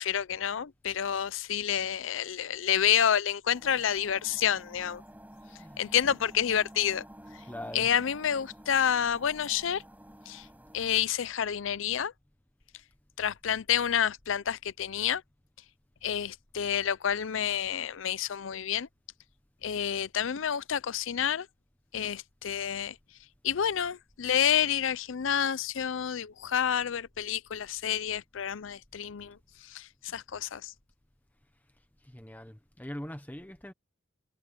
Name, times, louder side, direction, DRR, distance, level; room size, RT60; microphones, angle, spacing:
voice 1, 0.0-5.0 5.8-7.0 7.7-9.8 10.3-10.5 10.7-12.1 13.2-15.2 16.0-18.9 19.6-21.5 21.9-23.0 23.4-29.4 29.6-30.7, left 9 dB, 75° left, 0.5 m, -29 dB
sound 1, 3.5-11.0, equal, 10° right, 6.3 m, -51 dB
voice 2, 5.5-5.8 7.5-7.9 32.0-33.7, left 1 dB, 10° left, 1.1 m, -42 dB
head